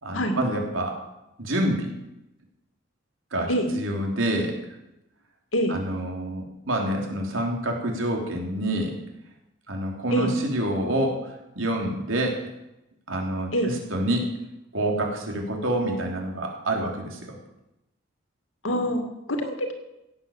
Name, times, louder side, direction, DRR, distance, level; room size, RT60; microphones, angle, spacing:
voice 1, 0.0-1.0 1.4-1.9 3.3-4.6 5.7-8.9 9.7-12.4 13.1-14.3 14.7-17.4, right 1 dB, 80° right, 1 dB, 3.4 m, -27 dB
voice 2, 18.6-19.7, equal, 80° left, 5 dB, 2.3 m, -25 dB
16.5 x 8.1 x 7.3 m, 0.92 s
head